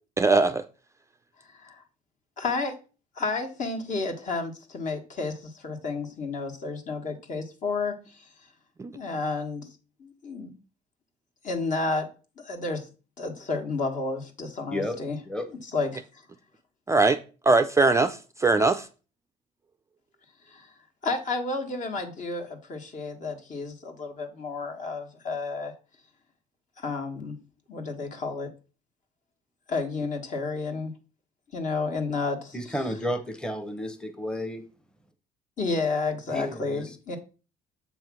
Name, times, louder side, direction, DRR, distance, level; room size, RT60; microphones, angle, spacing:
voice 1, 0.2-0.7 8.8-8.9 16.9-17.2 17.5-18.9, right 3 dB, 15° right, 0.4 m, -21 dB
voice 2, 1.5-1.8 2.4-2.8 3.2-8.3 8.9-9.7 10.0-10.5 11.4-12.1 12.4-12.9 13.2-15.2 15.7-16.0 20.5-20.7 21.0-25.7 26.8-27.4 27.7-28.5 29.7-30.9 31.5-32.7 35.6-37.2, left 3 dB, 50° left, 1.5 m, -31 dB
voice 3, 32.5-34.6 36.3-37.0, left 1 dB, 5° left, 0.8 m, -32 dB
7.2 x 3.1 x 6.0 m
cardioid pair, 110°, 17 cm